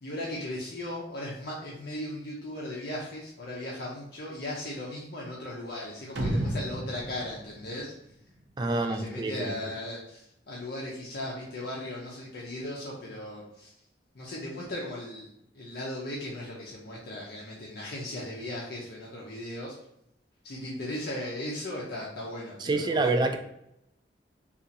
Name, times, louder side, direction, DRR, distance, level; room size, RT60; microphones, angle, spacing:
voice 1, 0.0-7.9 8.7-13.8 14.1-19.8 20.4-23.3, left 1 dB, 65° left, -4 dB, 0.6 m, -37 dB
sound 1, 6.2-8.7, right 1 dB, 75° right, 0.5 m, -32 dB
voice 2, 8.6-9.5 22.6-23.4, right 2 dB, 25° right, 6 dB, 0.3 m, -27 dB
2.8 x 2.4 x 3.9 m, 0.79 s
head